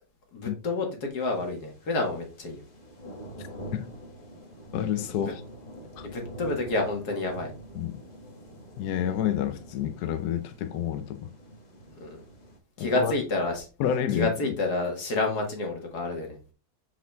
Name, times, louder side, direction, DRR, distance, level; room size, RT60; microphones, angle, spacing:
voice 1, 0.3-2.6 5.2-5.3 6.1-7.5 9.0-9.1 12.0-12.2 12.8-13.7 14.1-16.4, left 2 dB, 50° left, 2.1 m, -29 dB
sound 1, 1.2-12.6, right 1 dB, 25° left, 1.3 m, -45 dB
voice 2, 4.7-5.4 6.0-6.1 7.7-8.0 8.8-11.3 12.8-13.1 13.8-14.3, left 10 dB, 75° left, 0.9 m, -29 dB
5.8 x 5.0 x 3.4 m
omnidirectional pair, 2.3 m